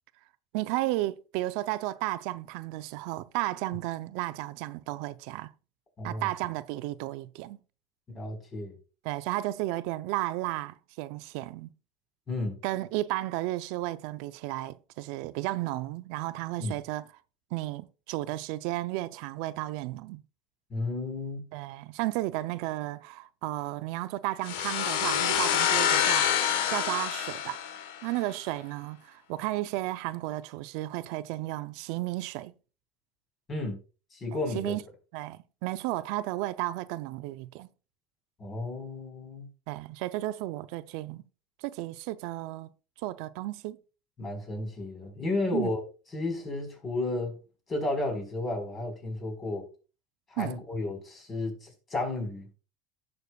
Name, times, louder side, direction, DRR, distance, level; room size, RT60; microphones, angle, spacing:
voice 1, 0.5-5.5 6.0-7.6 9.0-11.7 12.6-17.0 17.5-20.2 21.5-26.3 26.7-27.6 28.0-32.5 34.3-34.8 35.1-37.7 39.7-41.2 41.6-42.7 43.0-43.8 45.5-45.7 50.4-50.6, right 17 dB, 70° right, 0.5 m, -33 dB
voice 2, 6.0-6.3 8.1-8.8 12.3-12.6 16.6-16.7 20.7-21.4 33.5-33.8 34.1-34.8 38.4-39.5 44.2-45.8 46.1-47.4 47.7-49.7 50.3-52.5, left 2 dB, 30° left, 4.4 m, -32 dB
sound 1, 24.5-28.2, left 9 dB, 80° left, 1.2 m, -27 dB
16.0 x 6.6 x 2.3 m
supercardioid pair, 120°, 0 cm